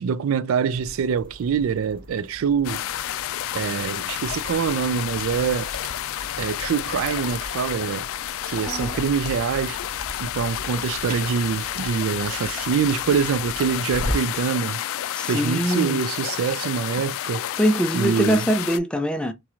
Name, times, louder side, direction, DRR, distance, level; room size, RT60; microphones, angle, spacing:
voice 1, 0.0-2.8 3.5-5.7 6.4-8.1 8.4-9.8 10.2-14.8 15.3-17.4 17.9-18.4, right 7 dB, 85° right, 0.3 m, -25 dB
sound 1, 0.7-14.4, equal, 45° right, 0.9 m, -39 dB
sound 2, 2.6-18.8, left 12 dB, 80° left, 0.3 m, -30 dB
voice 2, 8.7-9.0 15.1-16.0 17.6-19.3, equal, 5° left, 0.4 m, -23 dB
3.0 x 3.0 x 2.4 m
head